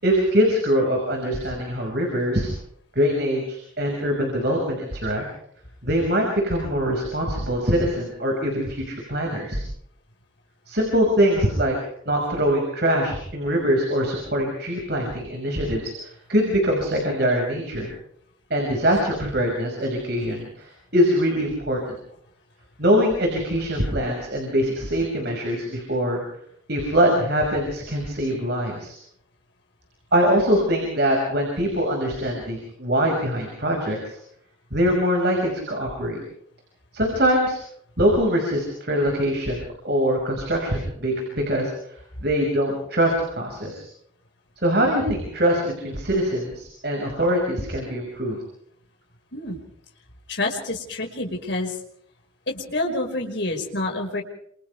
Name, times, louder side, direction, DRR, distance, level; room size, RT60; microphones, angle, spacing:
voice 1, 0.0-2.5 2.9-5.2 5.8-9.6 10.7-11.7 12.1-17.9 18.5-21.8 22.8-26.2 26.7-29.0 30.1-34.2 34.7-36.2 36.9-37.6 38.0-41.9 42.2-43.9 44.6-48.4, equal, 50° right, 1 dB, 5.9 m, -23 dB
voice 2, 50.3-51.8 52.5-54.2, left 2 dB, 60° left, 1 dB, 5.5 m, -27 dB
29.5 x 27.5 x 3.5 m, 0.68 s
head